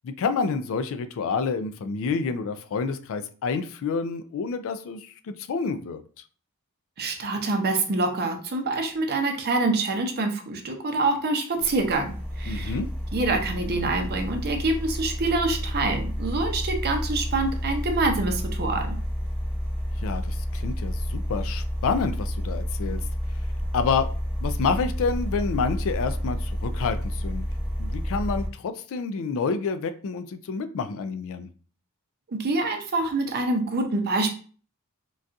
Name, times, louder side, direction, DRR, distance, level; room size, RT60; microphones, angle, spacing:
voice 1, 0.0-6.0 12.5-12.9 20.0-23.0 23.7-24.1 24.4-27.5 27.8-31.5, left 5 dB, 65° left, 10 dB, 0.3 m, -28 dB
voice 2, 7.0-12.8 13.1-18.9 32.3-34.3, right 2 dB, 45° right, 4 dB, 0.6 m, -26 dB
sound 1, 11.6-28.5, equal, 5° left, 1.1 m, -30 dB
3.9 x 2.3 x 2.5 m, 0.40 s
head